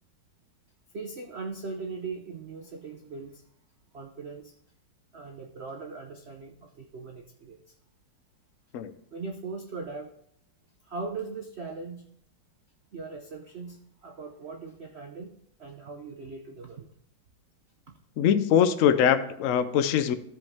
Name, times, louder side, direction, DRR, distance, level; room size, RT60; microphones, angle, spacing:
voice 1, 0.9-3.4 3.9-4.5 5.1-7.8 9.1-10.1 10.8-12.1 12.9-15.3 15.6-16.9, right 4 dB, 65° right, 4 dB, 0.6 m, -39 dB
voice 2, 18.2-20.1, left 8 dB, 90° left, 10 dB, 0.7 m, -22 dB
13.5 x 5.3 x 3.5 m, 0.73 s
omnidirectional pair, 2.1 m